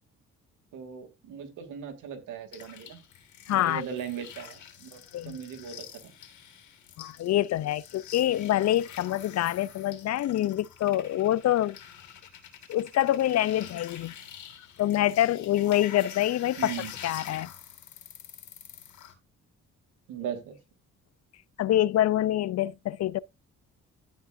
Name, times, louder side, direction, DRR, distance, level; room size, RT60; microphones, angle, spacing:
voice 1, 0.7-3.0 3.5-6.0 16.6-16.9 20.1-20.6, right 8 dB, 85° right, 2.5 m, -38 dB
sound 1, 2.5-19.1, left 9 dB, 75° left, 2.8 m, -46 dB
voice 2, 3.5-3.8 5.1-5.4 7.0-11.8 12.7-14.1 14.8-16.7 17.0-17.5 21.6-23.2, left 13 dB, 60° left, 0.5 m, -26 dB
15.5 x 5.4 x 2.6 m
cardioid pair, 90°, 30 cm